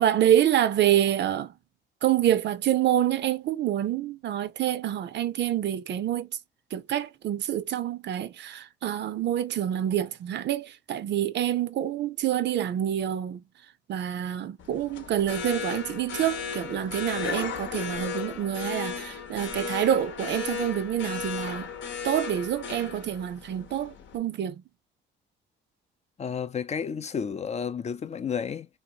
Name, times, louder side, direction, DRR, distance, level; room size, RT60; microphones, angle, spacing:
voice 1, 0.0-1.5 2.0-6.3 6.7-13.4 13.9-21.7 22.0-24.6, right 11 dB, 60° right, 0.5 m, -27 dB
sound 1, 14.6-24.2, left 7 dB, 70° left, 0.8 m, -35 dB
voice 2, 26.2-28.7, left 7 dB, 35° left, 0.4 m, -31 dB
2.9 x 2.8 x 2.8 m
cardioid pair, 90°, 20 cm